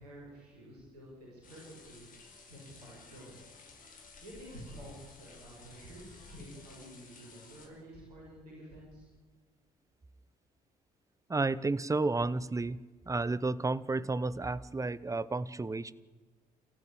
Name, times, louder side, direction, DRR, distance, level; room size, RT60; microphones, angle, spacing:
voice 1, 0.0-2.1 2.5-3.4 4.2-9.1, equal, 75° right, -3 dB, 7.9 m, -50 dB
sound 1, 1.4-7.7, left 4 dB, 45° left, 5.6 m, -54 dB
voice 2, 11.3-12.8 13.1-15.9, right 3 dB, 15° right, 17 dB, 1.1 m, -31 dB
29.5 x 15.0 x 8.7 m, 1.3 s
figure-of-eight pair, 50°, 20 cm